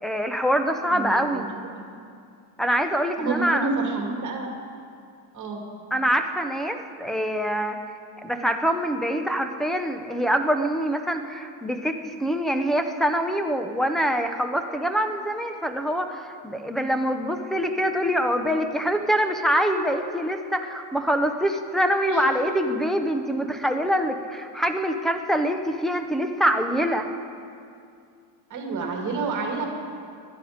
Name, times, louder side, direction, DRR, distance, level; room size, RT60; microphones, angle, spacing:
voice 1, 0.0-1.5 2.6-3.7 5.9-7.8 8.2-27.1, equal, ahead, 6 dB, 0.5 m, -24 dB
voice 2, 0.9-1.4 3.2-4.5 5.3-5.6 22.1-22.2 28.5-29.7, right 4 dB, 35° right, 1 dB, 2.3 m, -29 dB
20.5 x 11.5 x 5.0 m, 2.4 s
cardioid pair, 155°, 50 cm